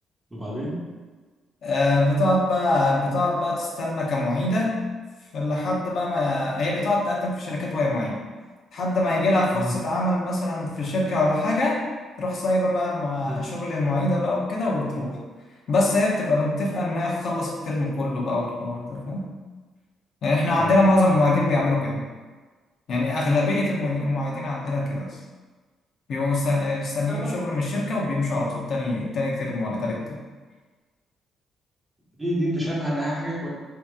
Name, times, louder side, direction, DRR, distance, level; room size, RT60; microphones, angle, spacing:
voice 1, 0.3-0.8 9.5-9.7 13.2-13.4 20.6-21.0 27.1-27.4 32.2-33.5, equal, 15° right, -5 dB, 1.1 m, -29 dB
voice 2, 1.6-4.8 5.3-8.2 8.7-11.8 12.2-15.2 15.7-19.3 20.2-22.0 22.9-25.2 26.1-30.2, left 2 dB, 60° left, -3 dB, 0.7 m, -24 dB
2.9 x 2.8 x 3.5 m, 1.4 s
cardioid pair, 90°, 0 cm